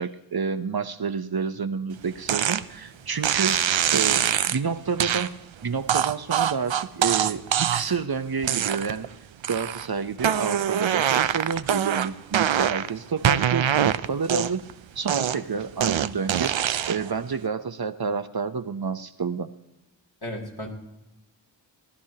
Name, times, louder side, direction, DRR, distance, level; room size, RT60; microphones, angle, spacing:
voice 1, 0.0-3.6 3.9-5.3 5.6-9.1 9.5-14.6 15.0-19.5, right 5 dB, 55° right, 10 dB, 0.7 m, -29 dB
sound 1, 2.3-2.6 3.2-4.6 5.0-5.3 5.9-8.0 8.4-9.1 9.4-9.9 10.2-12.9 13.2-14.7 15.1-17.1, right 9 dB, 90° right, 0.5 m, -24 dB
voice 2, 20.2-20.7, equal, 55° left, -1 dB, 3.0 m, -35 dB
19.5 x 12.0 x 2.9 m, 0.90 s
wide cardioid pair, 50°, 45 cm